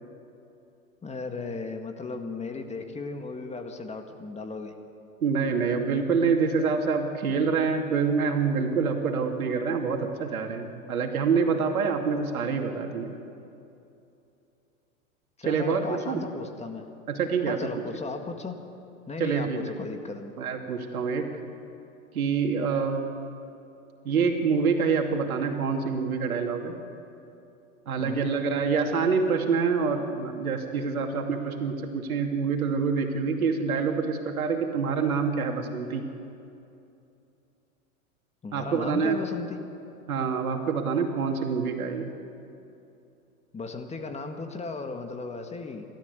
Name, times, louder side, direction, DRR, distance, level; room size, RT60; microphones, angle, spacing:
voice 1, 1.0-4.7 15.4-16.9 17.5-18.6 19.1-20.3 28.0-28.3 38.4-39.6 43.5-45.9, left 4 dB, 15° left, 5 dB, 1.9 m, -36 dB
voice 2, 5.2-13.2 15.4-16.2 17.1-17.6 19.2-19.6 20.4-21.3 22.1-23.1 24.0-26.7 27.9-36.1 38.5-39.2 40.1-42.1, right 5 dB, 85° right, 3 dB, 2.7 m, -26 dB
28.5 x 13.5 x 8.2 m, 2.7 s
hypercardioid pair, 110°, 42 cm